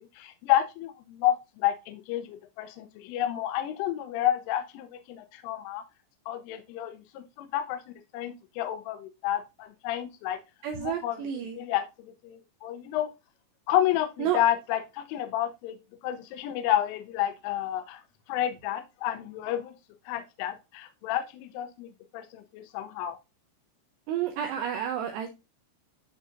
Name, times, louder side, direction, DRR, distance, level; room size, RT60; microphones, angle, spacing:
voice 1, 0.0-5.8 6.3-7.8 8.1-10.4 10.8-11.2 11.5-13.1 13.7-15.8 16.0-18.0 18.3-19.7 20.1-21.9 22.1-23.2, left 12 dB, 80° left, 3.2 m, -30 dB
voice 2, 10.6-11.6 14.2-14.4 24.1-25.4, right 9 dB, 90° right, 2.4 m, -30 dB
11.0 x 4.0 x 2.5 m
omnidirectional pair, 5.9 m